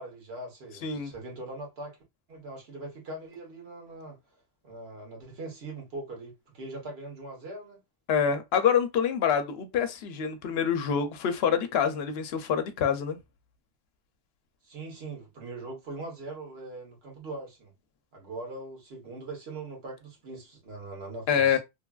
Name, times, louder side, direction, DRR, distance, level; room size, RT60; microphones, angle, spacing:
voice 1, 0.0-2.0 2.3-4.2 4.6-7.8 14.6-17.7 18.1-21.6, right 2 dB, 85° right, 1.4 m, -41 dB
voice 2, 8.1-13.2 21.3-21.6, left 7 dB, 80° left, 0.8 m, -26 dB
3.1 x 2.3 x 2.2 m
omnidirectional pair, 1.0 m